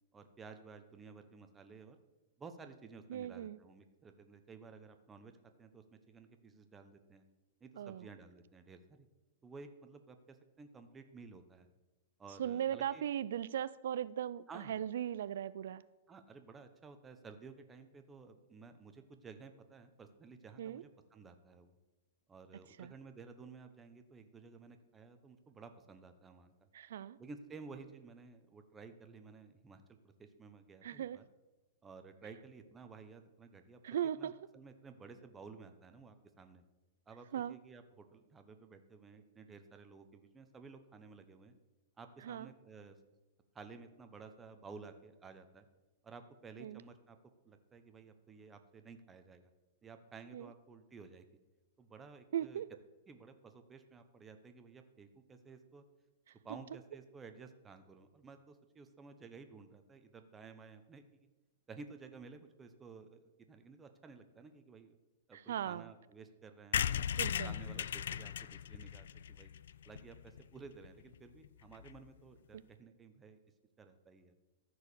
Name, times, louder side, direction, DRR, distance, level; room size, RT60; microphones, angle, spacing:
voice 1, 0.1-2.0 2.4-5.3 5.6-7.2 7.6-9.1 9.4-11.7 12.2-13.1 14.5-14.8 16.1-21.7 22.3-26.7 27.2-31.3 31.8-36.6 37.1-41.5 42.0-43.0 43.5-45.7 46.0-47.2 47.4-49.5 49.8-51.3 51.8-52.6 53.1-55.8 56.4-61.0 61.7-65.0 65.3-67.1 67.4-69.5 69.8-73.4 73.8-74.3, right 4 dB, 15° right, 7 dB, 0.8 m, -54 dB
voice 2, 3.1-3.6 7.8-8.1 12.4-15.8 20.6-20.8 22.8-22.9 26.7-27.2 30.8-31.2 33.8-34.3 37.3-37.6 42.2-42.5 46.6-46.8 50.3-50.5 52.3-52.7 65.3-65.9 67.2-67.5, right 10 dB, 75° right, 16 dB, 0.3 m, -38 dB
sound 1, 66.7-70.4 70.8-70.9 71.1-71.2 71.4-71.5 71.7-72.0, left 9 dB, 80° left, 0.3 m, -37 dB
14.0 x 4.8 x 6.9 m, 1.1 s
hypercardioid pair, 155°, 0 cm